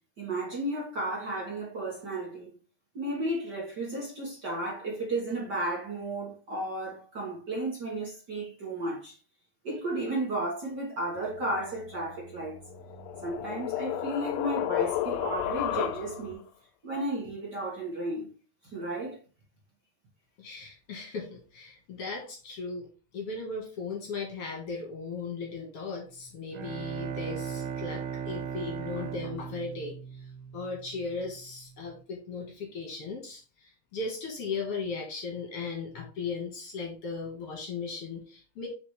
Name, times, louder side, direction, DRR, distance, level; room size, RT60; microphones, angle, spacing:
voice 1, 0.2-2.5 2.9-9.2 9.6-12.6 13.2-16.4 16.8-18.3 18.6-19.2, right 1 dB, 40° right, 1.8 m, -33 dB
sound 1, 11.1-16.3, right 4 dB, 70° right, 1.8 m, -52 dB
sound 2, 12.6-16.4, left 12 dB, 80° left, 1.5 m, -32 dB
voice 2, 20.4-22.9 23.1-30.0 30.5-38.7, left 4 dB, 55° left, 2.1 m, -37 dB
Bowed string instrument, 26.3-31.1, right 7 dB, 90° right, 2.4 m, -37 dB
6.9 x 5.0 x 3.2 m
omnidirectional pair, 3.6 m